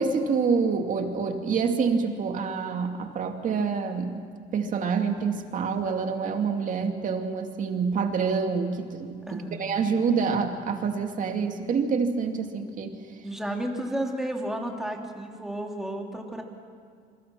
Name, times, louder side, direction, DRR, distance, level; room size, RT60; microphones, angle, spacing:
voice 1, 0.0-4.2 4.5-13.0, right 5 dB, 50° right, 4 dB, 2.5 m, -27 dB
voice 2, 9.3-9.7 13.2-16.4, right 1 dB, ahead, 1 dB, 3.1 m, -32 dB
27.0 x 23.0 x 6.2 m, 2.1 s
cardioid pair, 110°, 17 cm